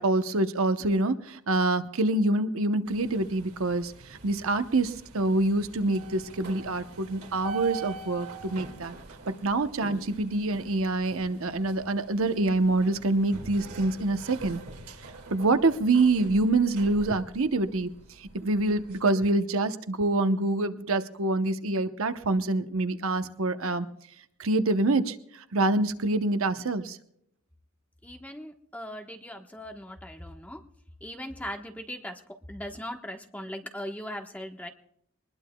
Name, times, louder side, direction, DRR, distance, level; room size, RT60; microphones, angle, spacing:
voice 1, 0.0-9.0 9.4-14.6 15.3-17.9 18.2-23.9 24.4-25.2 25.5-27.0, right 2 dB, 70° right, 9 dB, 0.9 m, -26 dB
sound 1, 2.8-19.0, right 4 dB, 85° right, 2.2 m, -44 dB
voice 2, 28.0-30.6 31.0-34.7, equal, 5° left, 3 dB, 1.2 m, -39 dB
23.5 x 20.5 x 2.3 m, 0.71 s
head